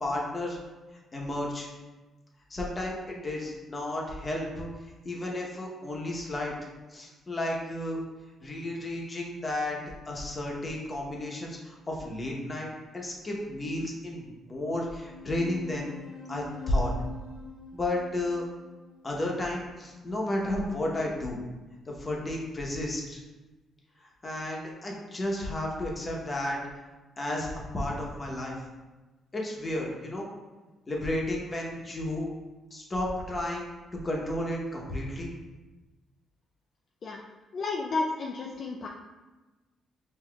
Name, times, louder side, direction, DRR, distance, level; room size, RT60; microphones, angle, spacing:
voice 1, 0.0-0.6 1.1-1.7 2.5-6.5 6.9-8.0 8.4-9.8 10.1-15.9 16.3-16.9 17.7-18.4 19.0-21.4 21.9-23.2 24.0-26.6 27.2-28.6 29.3-30.3 30.9-32.3 32.7-33.7 34.0-35.3, left 1 dB, 30° left, -2 dB, 0.9 m, -32 dB
sound 1, 15.1-20.0, left 5 dB, 70° left, 0.8 m, -45 dB
voice 2, 37.5-38.9, left 3 dB, 50° left, -1 dB, 0.4 m, -31 dB
5.5 x 2.8 x 2.3 m, 1.2 s
cardioid pair, 90°, 0 cm